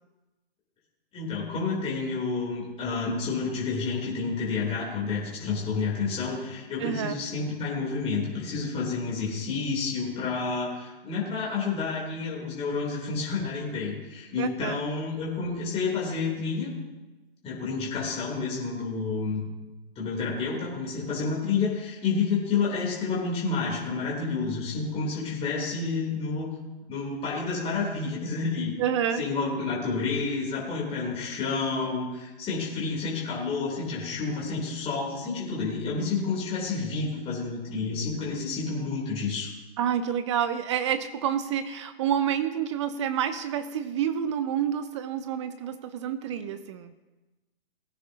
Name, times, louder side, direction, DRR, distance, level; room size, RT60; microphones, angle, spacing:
voice 1, 1.1-16.7 17.4-19.4 19.9-26.5 26.9-28.7 29.2-39.5, left 4 dB, 20° left, -5 dB, 3.2 m, -29 dB
voice 2, 6.8-7.2 14.4-14.8 28.8-29.2 39.8-46.9, right 9 dB, 30° right, 12 dB, 0.5 m, -28 dB
18.0 x 9.6 x 2.8 m, 1.1 s
hypercardioid pair, 130°, 31 cm